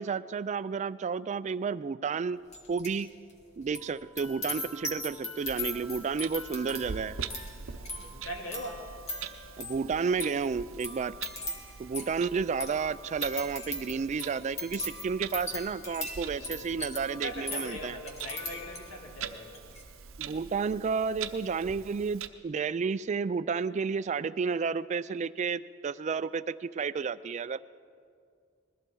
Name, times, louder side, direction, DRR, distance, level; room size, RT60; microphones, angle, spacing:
voice 1, 0.0-2.4 2.7-3.1 3.6-7.2 9.6-11.2 11.8-18.0 20.2-27.6, right 5 dB, 35° right, 16 dB, 0.3 m, -31 dB
sound 1, 2.5-3.0 3.3-19.1 19.5-19.8, left 2 dB, 35° left, 2.2 m, -40 dB
Clock, 5.4-22.3, right 7 dB, 70° right, 0.8 m, -44 dB
voice 2, 7.7-8.9 12.2-12.3 16.2-19.6, left 1 dB, 85° left, 0 dB, 2.9 m, -42 dB
20.5 x 14.5 x 4.6 m, 2.2 s
head